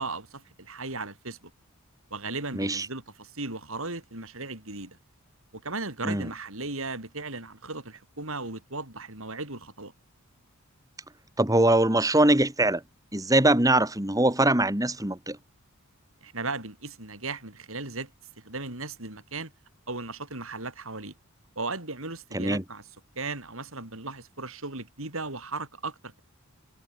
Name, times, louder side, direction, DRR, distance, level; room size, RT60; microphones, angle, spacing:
voice 1, 0.0-1.5 2.1-5.0 5.5-9.9 16.2-18.1 18.4-19.5 19.9-21.1 21.5-22.8 23.1-26.2, right 3 dB, 65° right, 5.0 m, -36 dB
voice 2, 2.5-2.9 6.0-6.3 11.4-12.8 13.1-15.4 22.3-22.6, right 1 dB, 15° right, 3.2 m, -22 dB
head